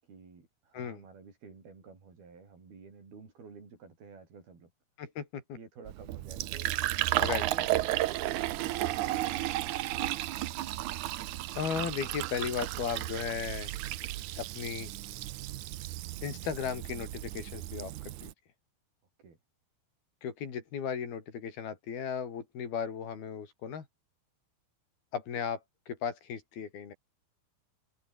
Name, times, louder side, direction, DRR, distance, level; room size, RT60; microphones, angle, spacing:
voice 1, 0.0-4.7 5.5-6.7 7.1-10.3 19.2-19.4, right 5 dB, 90° right, 8.3 m, -51 dB
voice 2, 5.0-5.6 7.2-7.4 11.6-13.7 14.4-14.9 16.2-18.3 20.2-23.9 25.1-25.6 25.9-27.0, left 7 dB, 90° left, 5.6 m, -36 dB
Fill (with liquid), 5.9-18.3, right 15 dB, 70° right, 1.9 m, -34 dB
omnidirectional pair, 4.2 m